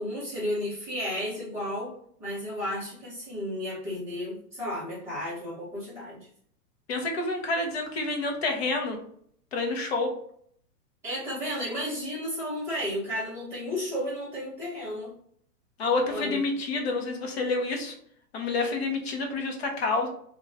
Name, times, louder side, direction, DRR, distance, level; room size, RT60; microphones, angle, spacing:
voice 1, 0.0-1.9 2.2-6.2 11.0-15.1 16.1-16.4, equal, 5° right, -12 dB, 0.8 m, -33 dB
voice 2, 6.9-9.0 9.5-10.1 15.8-17.9 18.3-20.1, left 3 dB, 40° left, 2 dB, 0.6 m, -28 dB
2.4 x 2.2 x 3.2 m, 0.63 s
hypercardioid pair, 170°, 47 cm